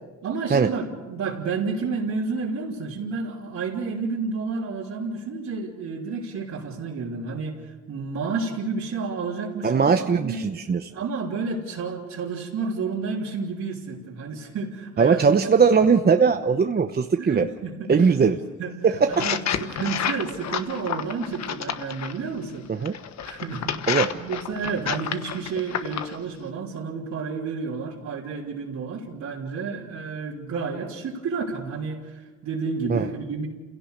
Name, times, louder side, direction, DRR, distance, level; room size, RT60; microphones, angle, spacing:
voice 1, 0.2-10.4 10.9-15.6 17.2-23.0 23.2-33.5, right 4 dB, 65° right, -4 dB, 3.4 m, -31 dB
voice 2, 9.6-10.9 15.0-17.5 17.9-18.4 18.8-19.2 22.7-22.9 23.9-24.1 32.9-33.0, right 5 dB, 30° right, 6 dB, 0.9 m, -20 dB
sound 1, 19.1-22.2 22.9-26.2, left 8 dB, 60° left, 1.3 m, -30 dB
28.5 x 17.0 x 6.7 m, 1.3 s
cardioid pair, 90°, 30 cm